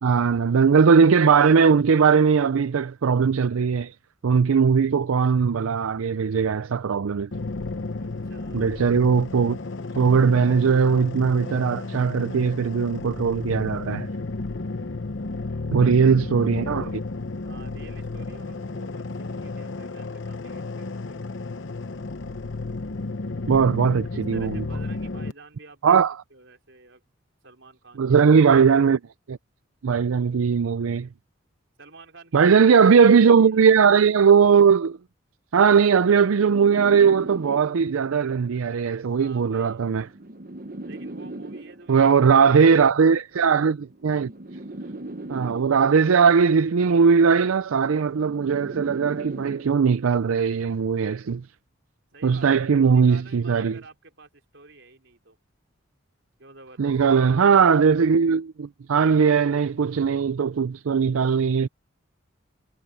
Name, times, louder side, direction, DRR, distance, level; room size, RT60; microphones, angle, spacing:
voice 1, 0.0-3.9 4.2-7.3 8.5-9.6 10.0-14.1 15.7-17.0 23.5-24.6 25.8-26.1 28.0-29.0 29.3-29.4 29.8-31.1 32.3-35.0 35.5-40.1 41.9-44.3 45.3-51.4 52.2-53.8 56.8-61.7, right 6 dB, 90° right, 0.5 m, -19 dB
sound 1, 7.3-25.3, left 3 dB, 65° left, 0.8 m, -33 dB
voice 2, 8.0-8.8 15.3-16.1 17.4-21.3 24.1-26.0 26.3-27.0 27.4-28.4 31.8-32.7 33.2-33.6 39.2-39.9 40.8-42.3 52.1-55.4 56.4-57.3, right 3 dB, 65° right, 4.3 m, -49 dB
sound 2, 35.9-38.1 39.1-42.1 43.1-46.1 47.1-50.1, right 2 dB, 45° right, 1.1 m, -39 dB
head